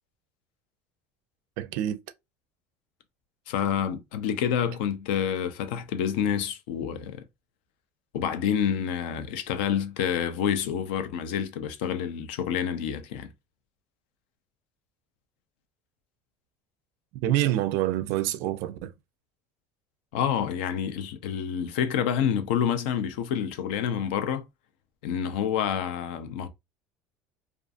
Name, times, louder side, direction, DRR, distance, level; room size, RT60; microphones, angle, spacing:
voice 1, 1.6-2.0 17.2-18.9, right 13 dB, 60° right, 0.4 m, -26 dB
voice 2, 3.5-7.2 8.1-13.3 20.1-24.4 25.0-26.5, left 8 dB, 85° left, 0.5 m, -28 dB
2.5 x 2.4 x 2.4 m
cardioid pair, 160°, 5 cm